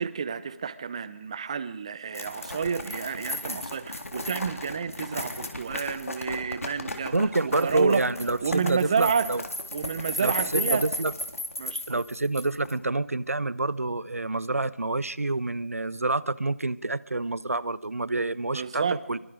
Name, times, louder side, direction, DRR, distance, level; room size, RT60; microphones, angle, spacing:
voice 1, 0.0-7.1 7.4-8.1 8.4-9.3 9.7-10.9 11.6-12.0 18.5-19.0, right 6 dB, 25° right, 16 dB, 0.8 m, -30 dB
sound 1, 2.1-12.7, left 1 dB, 90° left, 3.7 m, -34 dB
voice 2, 7.1-9.4 10.2-11.1 11.9-19.2, right 2 dB, 85° right, 20 dB, 0.9 m, -27 dB
24.0 x 23.5 x 5.0 m, 0.85 s
figure-of-eight pair, 165°, 8 cm